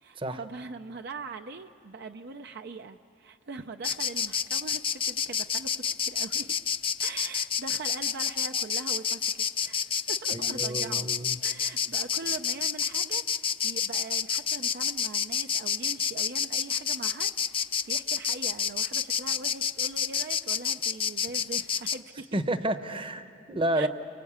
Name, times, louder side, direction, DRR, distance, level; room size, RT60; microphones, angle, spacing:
voice 1, 0.0-6.5 7.0-11.1 11.4-22.4 23.7-23.9, right 3 dB, 60° right, 6 dB, 0.6 m, -42 dB
Insect, 3.8-22.0, left 7 dB, 30° left, 0.6 m, -29 dB
voice 2, 10.3-11.4 22.3-23.9, right 1 dB, 30° right, 10 dB, 0.9 m, -30 dB
30.0 x 23.0 x 8.7 m, 2.7 s
head